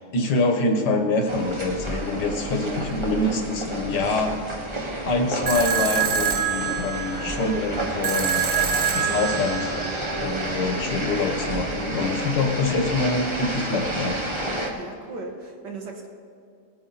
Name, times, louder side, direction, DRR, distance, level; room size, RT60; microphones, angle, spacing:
voice 1, 0.0-4.3 5.1-8.5 9.0-9.7 10.2-14.2, left 2 dB, 80° left, 4 dB, 2.0 m, -25 dB
sound 1, 1.3-14.7, right 1 dB, 20° right, 1.3 m, -30 dB
sound 2, 5.5-10.5, right 7 dB, 65° right, 1.4 m, -26 dB
voice 2, 14.6-16.1, right 3 dB, 90° right, 2 dB, 2.3 m, -38 dB
19.0 x 9.8 x 4.2 m, 2.4 s
omnidirectional pair, 1.8 m